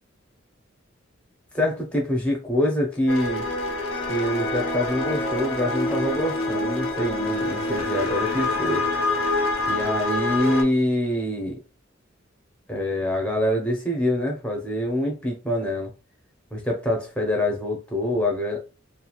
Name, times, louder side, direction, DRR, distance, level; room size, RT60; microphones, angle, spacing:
voice 1, 1.5-3.5 4.1-8.8 9.7-11.6 12.7-15.9 16.5-18.6, left 1 dB, 5° left, 0.6 m, -25 dB
sound 1, 3.1-10.6, left 2 dB, 90° left, 0.7 m, -26 dB
2.4 x 2.3 x 2.9 m
head